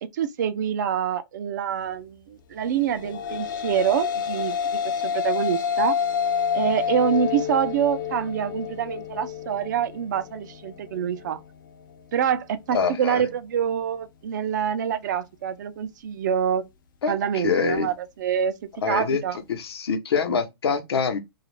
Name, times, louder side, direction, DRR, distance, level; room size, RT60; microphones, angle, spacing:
voice 1, 0.0-6.0 6.5-11.4 12.1-16.6 17.1-18.5 18.9-19.4, right 8 dB, 50° right, 0.4 m, -26 dB
sound 1, 2.8-11.4, left 7 dB, 55° left, 0.4 m, -28 dB
voice 2, 12.7-13.2 17.0-17.9 18.8-19.2 19.5-21.2, left 5 dB, 90° left, 0.8 m, -25 dB
2.3 x 2.1 x 3.1 m
hypercardioid pair, 165°, 13 cm